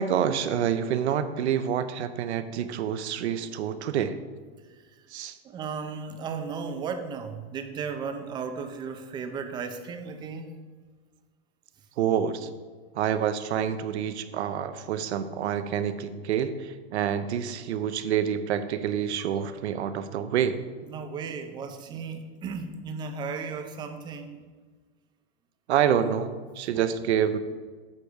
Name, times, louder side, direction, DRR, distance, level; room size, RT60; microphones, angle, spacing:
voice 1, 0.0-4.2 5.1-5.4 12.0-12.5 12.9-20.6 25.7-27.4, right 9 dB, 80° right, 11 dB, 0.7 m, -27 dB
voice 2, 5.4-10.5 19.2-19.5 20.9-24.4, right 5 dB, 15° right, 7 dB, 0.4 m, -35 dB
8.4 x 3.4 x 6.5 m, 1.4 s
hypercardioid pair, 140°, 33 cm